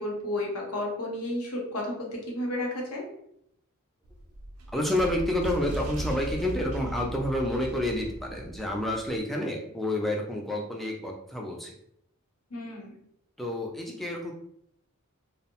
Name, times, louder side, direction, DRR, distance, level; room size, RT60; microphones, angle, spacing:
voice 1, 0.0-3.0 12.5-13.0, left 1 dB, 80° left, 0 dB, 0.8 m, -32 dB
sound 1, 4.0-9.2, right 2 dB, 75° right, 0.4 m, -37 dB
voice 2, 4.7-11.7 13.4-14.3, left 1 dB, ahead, 0 dB, 0.3 m, -29 dB
2.6 x 2.0 x 2.8 m, 0.73 s
head